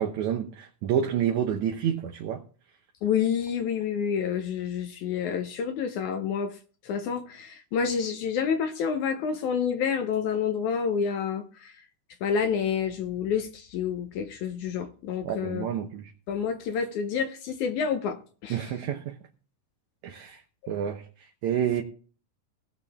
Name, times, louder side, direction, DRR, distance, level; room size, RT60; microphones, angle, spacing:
voice 1, 0.0-2.4 15.2-16.1 18.5-19.2 20.0-20.4 20.7-21.0 21.4-21.8, right 9 dB, 70° right, 2.0 m, -28 dB
voice 2, 3.0-6.6 6.8-11.7 12.2-15.7 16.3-18.6, left 7 dB, 70° left, 2.1 m, -28 dB
18.5 x 6.6 x 3.5 m
omnidirectional pair, 4.0 m